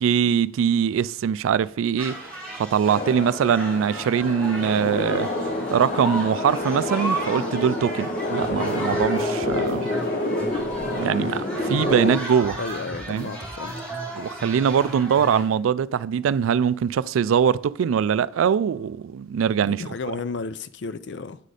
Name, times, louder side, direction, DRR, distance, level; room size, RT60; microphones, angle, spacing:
voice 1, 0.0-2.1 2.6-5.3 5.7-9.8 11.0-12.6 13.1-13.3 14.2-20.1, right 7 dB, 85° right, 0.3 m, -22 dB
sound 1, 2.0-15.4, right 1 dB, 5° left, 1.5 m, -35 dB
sound 2, 2.8-12.2, left 1 dB, 40° left, 0.8 m, -28 dB
sound 3, 8.4-12.2 12.4-15.6, right 1 dB, 15° right, 0.9 m, -40 dB
voice 2, 12.6-13.8 19.6-21.4, left 4 dB, 60° left, 0.4 m, -33 dB
9.0 x 4.1 x 4.9 m
head